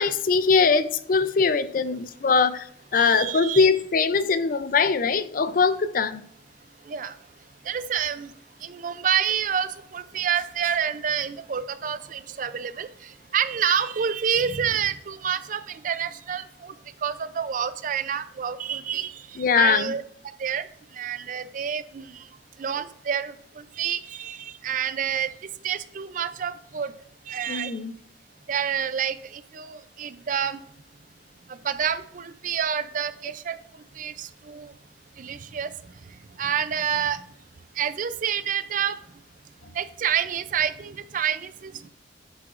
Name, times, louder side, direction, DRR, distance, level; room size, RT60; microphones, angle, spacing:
voice 1, 0.0-6.3 19.4-19.9 27.5-27.9 39.6-39.7, left 5 dB, 45° left, 13 dB, 0.4 m, -22 dB
voice 2, 2.9-3.7 6.9-7.2 7.6-8.3 8.6-16.8 17.0-20.0 20.4-20.7 20.9-22.3 22.6-25.3 25.6-26.9 27.3-27.8 28.5-30.6 31.5-34.7 35.2-35.7 36.4-37.2 37.8-39.0 39.7-41.9, right 8 dB, 45° right, 13 dB, 0.4 m, -28 dB
9.8 x 7.5 x 2.5 m, 0.64 s
head